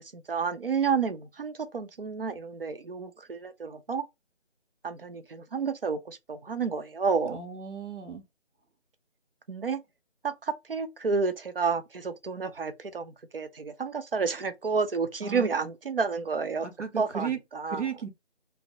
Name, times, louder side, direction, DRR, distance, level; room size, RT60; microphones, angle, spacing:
voice 1, 0.0-4.0 4.8-7.4 9.5-9.8 10.2-16.7 17.0-17.8, right 5 dB, 55° right, 0.5 m, -30 dB
voice 2, 7.3-8.2 15.2-15.5 16.6-17.4 17.7-18.1, right 7 dB, 85° right, 0.8 m, -35 dB
2.6 x 2.0 x 2.5 m
figure-of-eight pair, 160°, 35 cm